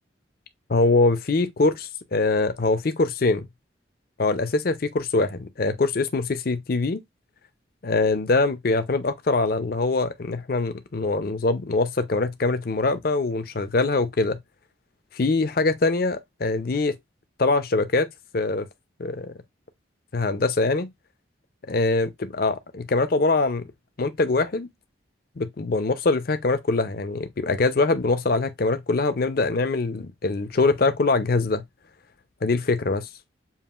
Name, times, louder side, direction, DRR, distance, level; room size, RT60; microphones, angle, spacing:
voice 1, 0.7-3.5 4.2-7.0 7.8-14.4 15.1-16.9 17.4-18.1 18.3-18.7 19.0-19.4 20.1-20.9 21.7-23.7 24.0-24.7 25.4-31.6 32.4-33.1, left 3 dB, 50° left, 0.6 m, -23 dB
7.1 x 2.5 x 2.4 m
head